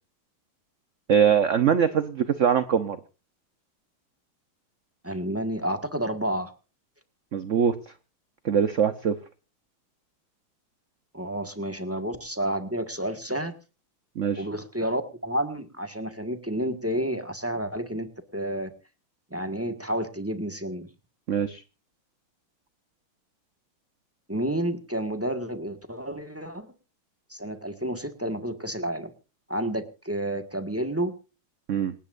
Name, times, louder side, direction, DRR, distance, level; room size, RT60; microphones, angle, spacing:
voice 1, 1.1-3.0 7.3-7.8 8.4-9.2 14.2-14.5 21.3-21.6 31.7-31.9, right 7 dB, 55° right, 11 dB, 0.9 m, -22 dB
voice 2, 5.0-6.5 11.1-13.5 14.4-18.7 19.3-20.9 24.3-26.7 27.3-29.1 29.5-31.1, right 1 dB, 10° right, 7 dB, 1.4 m, -30 dB
27.0 x 10.0 x 2.6 m, 0.33 s
omnidirectional pair, 2.3 m